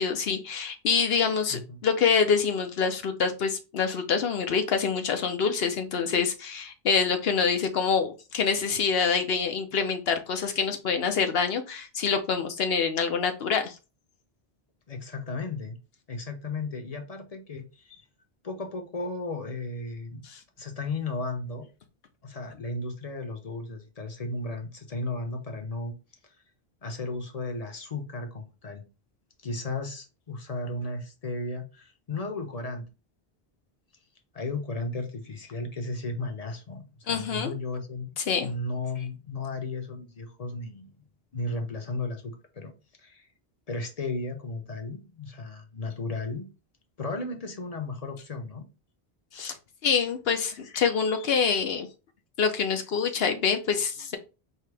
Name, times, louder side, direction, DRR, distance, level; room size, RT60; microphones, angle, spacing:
voice 1, 0.0-13.7 20.2-20.4 37.1-37.5 38.2-38.5 49.3-49.5 49.8-51.9 52.4-54.2, left 6 dB, 70° left, 7 dB, 1.0 m, -26 dB
voice 2, 1.5-1.8 14.9-15.8 16.1-17.9 18.4-20.3 20.6-21.7 22.2-25.9 26.8-28.8 29.4-32.9 34.3-38.1 38.4-40.9 41.3-42.7 43.0-43.2 43.7-46.5 47.0-48.6, left 2 dB, 40° left, 5 dB, 0.9 m, -34 dB
4.7 x 2.9 x 3.3 m, 0.31 s
omnidirectional pair, 1.1 m